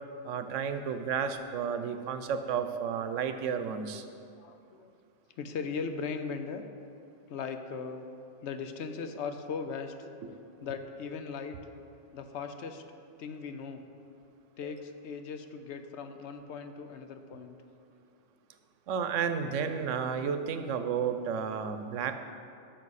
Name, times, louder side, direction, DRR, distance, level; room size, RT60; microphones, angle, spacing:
voice 1, 0.2-4.0 14.6-14.7 18.9-22.2, right 7 dB, 85° right, 9 dB, 1.0 m, -32 dB
voice 2, 4.3-4.9 5.4-6.6 7.3-8.1 8.4-10.1 10.6-11.6 12.1-12.8 13.2-13.8 14.6-17.5, left 5 dB, 70° left, 8 dB, 0.9 m, -38 dB
12.0 x 6.3 x 4.1 m, 2.5 s
omnidirectional pair, 1.2 m